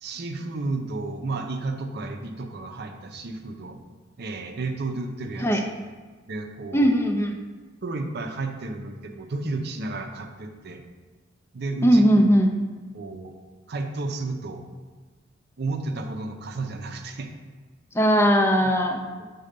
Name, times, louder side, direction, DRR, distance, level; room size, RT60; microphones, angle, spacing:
voice 1, 0.0-3.8 4.2-5.7 6.3-7.0 7.8-10.8 11.5-12.1 12.9-13.3 13.7-14.6 15.6-17.3 18.6-18.7 19.2-19.3, right 3 dB, 60° right, 6 dB, 0.6 m, -32 dB
voice 2, 6.7-7.4 11.8-12.5 17.9-19.0, equal, 15° left, 3 dB, 0.5 m, -19 dB
5.5 x 4.1 x 5.1 m, 1.4 s
head